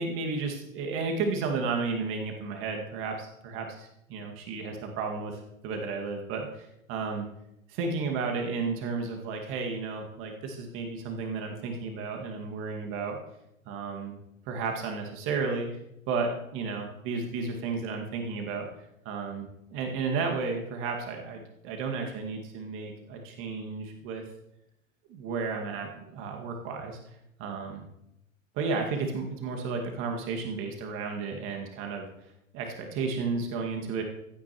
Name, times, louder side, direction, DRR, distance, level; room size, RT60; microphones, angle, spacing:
voice 1, 0.0-7.3 7.7-13.2 13.7-14.2 14.5-15.7 16.1-18.7 19.1-24.2 25.1-27.0 27.4-27.8 28.5-32.1 32.5-34.0, right 4 dB, 30° right, 2 dB, 2.0 m, -33 dB
15.0 x 9.4 x 3.0 m, 0.83 s
figure-of-eight pair, 105°, 40 cm